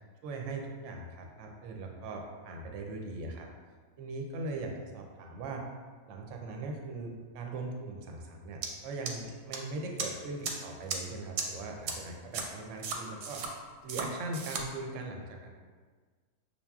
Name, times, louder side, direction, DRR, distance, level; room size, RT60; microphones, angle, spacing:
voice 1, 0.2-3.5 4.0-5.6 6.1-13.5 13.8-15.5, right 3 dB, 65° right, 2 dB, 0.8 m, -40 dB
sound 1, 8.6-8.7 9.1-9.6 10.0-10.1 10.4-10.5 10.9-11.0 11.4-11.5 11.9-12.0 12.3-12.4 12.8-13.5 13.9-14.0 14.3-14.6, right 5 dB, 90° right, 1.1 m, -34 dB
6.7 x 2.4 x 2.3 m, 1.5 s
omnidirectional pair, 1.6 m